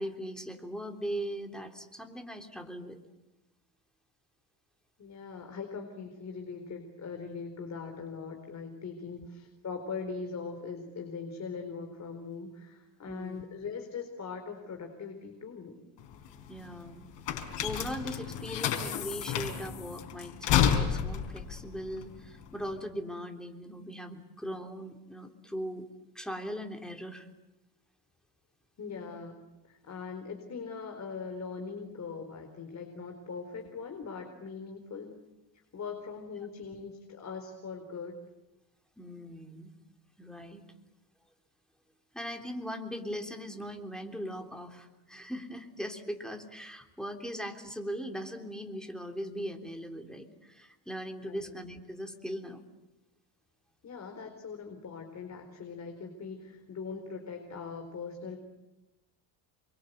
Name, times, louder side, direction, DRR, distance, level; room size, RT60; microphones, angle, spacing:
voice 1, 0.0-3.0 9.2-9.3 13.1-13.4 16.5-17.1 17.3-25.9 26.2-27.3 39.0-39.7 40.2-40.6 42.1-52.6, equal, ahead, 3 dB, 3.4 m, -39 dB
voice 2, 5.0-15.8 28.8-29.4 29.7-35.2 35.7-38.1 51.3-51.5 53.8-58.4, left 5 dB, 40° left, 4 dB, 4.3 m, -41 dB
sound 1, 16.0-22.8, left 9 dB, 80° left, 4.7 m, -31 dB
29.0 x 23.5 x 8.1 m, 0.98 s
cardioid pair, 120°, 42 cm